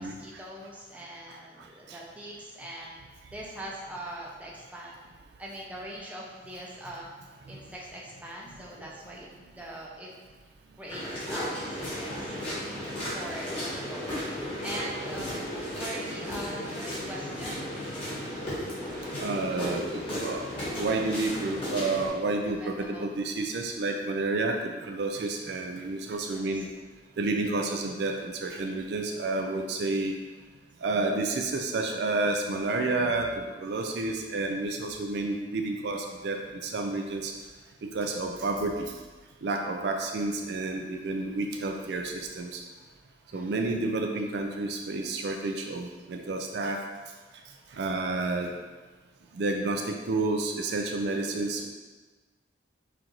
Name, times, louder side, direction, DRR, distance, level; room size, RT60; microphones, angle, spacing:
voice 1, 0.0-3.0 3.3-5.0 5.4-7.0 7.5-10.1 10.8-12.6 13.1-14.2 14.6-15.3 15.7-17.7 22.4-23.1 26.1-26.6 43.3-43.6 47.6-48.0, right 1 dB, 10° right, -4 dB, 0.5 m, -42 dB
sound 1, 10.9-22.1, equal, 30° left, 1.4 m, -35 dB
voice 2, 19.2-20.4 20.8-26.7 27.2-30.1 30.8-37.3 37.8-38.9 39.4-42.6 43.3-46.8 47.7-48.5 49.3-51.7, right 2 dB, 60° right, 3 dB, 0.4 m, -30 dB
5.6 x 2.5 x 2.9 m, 1.3 s
head